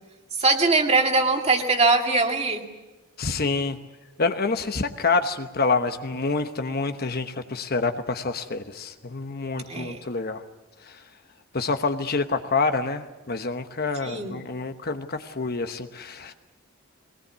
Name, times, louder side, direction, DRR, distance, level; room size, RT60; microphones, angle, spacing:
voice 1, 0.3-2.6 9.7-10.0 14.0-14.4, right 3 dB, 30° right, 3 dB, 2.1 m, -22 dB
voice 2, 3.2-3.8 4.2-10.4 10.8-11.0 11.5-16.3, left 4 dB, 45° left, 7 dB, 1.1 m, -27 dB
22.5 x 19.0 x 8.2 m, 1.1 s
head